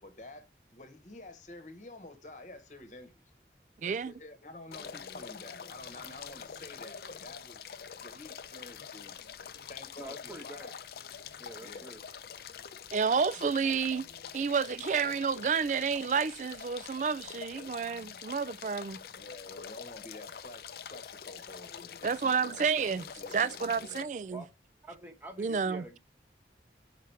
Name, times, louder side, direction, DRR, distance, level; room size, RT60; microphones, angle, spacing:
voice 1, 0.0-3.1 3.8-9.2 9.7-10.8 11.6-11.9 19.1-24.1, left 2 dB, 45° left, 1.1 m, -49 dB
voice 2, 3.8-4.1 12.9-14.1 14.3-19.0 22.0-23.0 23.3-24.4 25.4-25.9, right 6 dB, 45° right, 0.3 m, -30 dB
sound 1, 4.7-24.0, left 7 dB, 60° left, 0.5 m, -45 dB
voice 3, 10.0-10.7 11.4-12.0 24.3-24.5 24.8-26.0, right 1 dB, 10° right, 1.1 m, -46 dB
5.9 x 4.9 x 3.3 m
head